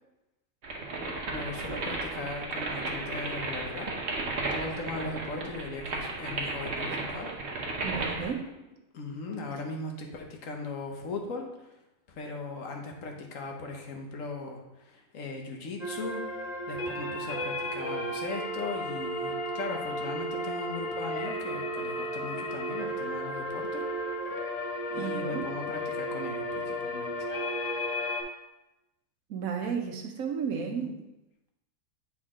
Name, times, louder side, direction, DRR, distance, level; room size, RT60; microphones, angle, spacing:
sound 1, 0.6-8.3, right 2 dB, 55° right, 1.3 m, -34 dB
voice 1, 1.3-3.9 4.5-7.3 8.9-11.7 12.1-23.9 24.9-27.3 30.5-31.0, left 3 dB, 70° left, 2 dB, 1.3 m, -38 dB
voice 2, 7.8-8.5 25.0-25.5 29.3-30.9, right 6 dB, 90° right, 4 dB, 1.3 m, -33 dB
sound 2, 15.8-28.2, equal, 35° left, 0.8 m, -33 dB
8.0 x 4.5 x 3.7 m, 0.96 s
omnidirectional pair, 1.4 m